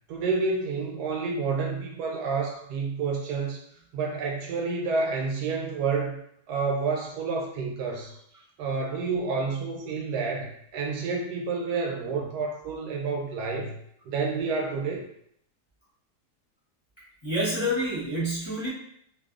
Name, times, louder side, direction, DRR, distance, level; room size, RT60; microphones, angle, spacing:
voice 1, 0.1-3.6 3.9-6.2 6.5-8.1 8.6-13.8 14.0-15.0, right 4 dB, 85° right, 0 dB, 1.2 m, -29 dB
voice 2, 17.2-18.7, equal, 25° left, -10 dB, 0.8 m, -28 dB
2.6 x 2.6 x 2.4 m, 0.69 s
omnidirectional pair, 1.7 m